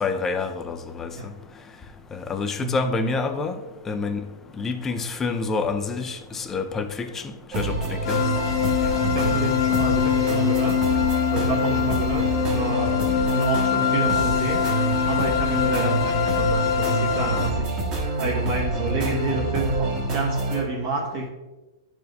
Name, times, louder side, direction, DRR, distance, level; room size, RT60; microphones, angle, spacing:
voice 1, 0.0-1.1 2.1-3.6 3.9-4.3 4.6-7.2 7.6-8.2, left 4 dB, 15° left, 0.5 m, -27 dB
sound 1, 7.5-20.6, right 3 dB, 25° right, 1.4 m, -27 dB
sound 2, 8.0-17.5, left 10 dB, 55° left, 0.9 m, -24 dB
voice 2, 8.8-13.0 13.3-14.8 15.0-21.3, right 2 dB, 45° right, 1.3 m, -29 dB
10.5 x 4.6 x 3.3 m
hypercardioid pair, 150°, 3 cm